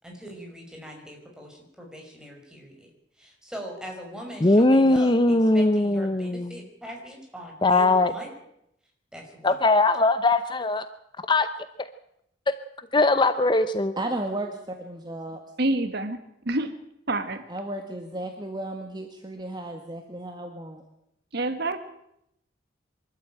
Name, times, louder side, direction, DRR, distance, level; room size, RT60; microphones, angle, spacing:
voice 1, 0.0-2.9 3.2-8.3 9.1-9.6, right 1 dB, 5° right, 1 dB, 5.6 m, -41 dB
voice 2, 4.4-6.6 7.6-8.1 9.4-10.9 11.3-11.5 11.8-11.9 12.5-12.6 12.9-13.9, left 2 dB, 25° left, 11 dB, 0.7 m, -20 dB
voice 3, 14.0-15.4 17.5-20.8, right 1 dB, 25° right, 4 dB, 1.9 m, -34 dB
voice 4, 15.6-16.2 16.4-16.7 17.1-17.4 21.3-21.8, right 2 dB, 60° right, 9 dB, 1.6 m, -26 dB
24.5 x 13.5 x 8.9 m, 0.78 s
head